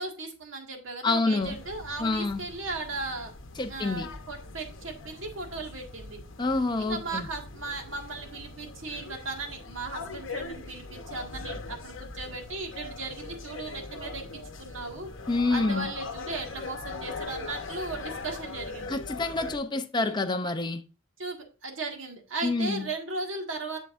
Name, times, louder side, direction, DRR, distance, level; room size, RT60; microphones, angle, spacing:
voice 1, 0.0-3.3 3.7-6.2 6.8-15.1 15.5-19.0 19.9-20.2 21.2-23.8, right 3 dB, 85° right, 1.8 m, -37 dB
voice 2, 1.0-1.6 2.0-2.4 3.6-4.1 6.4-7.3 15.3-15.9 18.9-20.8 22.4-22.9, left 3 dB, 25° left, 0.5 m, -27 dB
sound 1, 1.4-19.6, left 3 dB, 75° left, 0.9 m, -41 dB
8.0 x 7.2 x 2.5 m
head